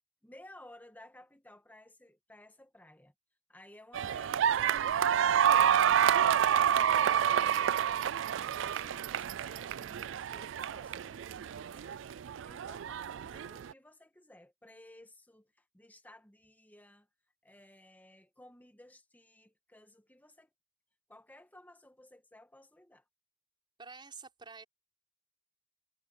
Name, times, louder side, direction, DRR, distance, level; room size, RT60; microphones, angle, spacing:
voice 1, 0.2-3.1 3.5-5.2 5.6-8.0 8.6-12.0 12.4-17.1 17.4-20.5 21.1-23.0, left 1 dB, 10° left, 1.8 m, -56 dB
sound 1, 3.9-13.7, right 9 dB, 75° right, 0.4 m, -29 dB
voice 2, 23.8-24.6, right 4 dB, 25° right, 5.1 m, -48 dB
head